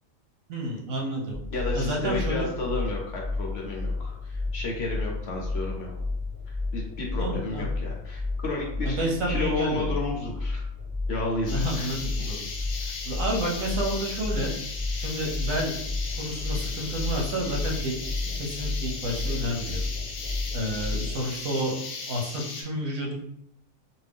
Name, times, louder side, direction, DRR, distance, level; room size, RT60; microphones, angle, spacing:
voice 1, 0.5-1.4 1.7-2.5 7.2-7.7 8.8-9.9 11.5-12.4 12.8-14.5 15.0-15.8 16.2-17.9 18.3-19.8 20.5-21.8 22.1-23.1, right 1 dB, 80° right, -1 dB, 1.2 m, -30 dB
sound 1, 1.3-21.2, left 3 dB, 40° right, 0.9 m, -32 dB
voice 2, 1.5-5.9 6.5-9.0 9.3-10.6 11.1-11.9 12.2-12.3 12.7-12.8, left 2 dB, 55° left, -2 dB, 0.9 m, -32 dB
sound 2, 11.5-22.6, left 4 dB, 85° left, 1.1 m, -37 dB
2.6 x 2.6 x 3.4 m, 0.74 s
omnidirectional pair, 1.4 m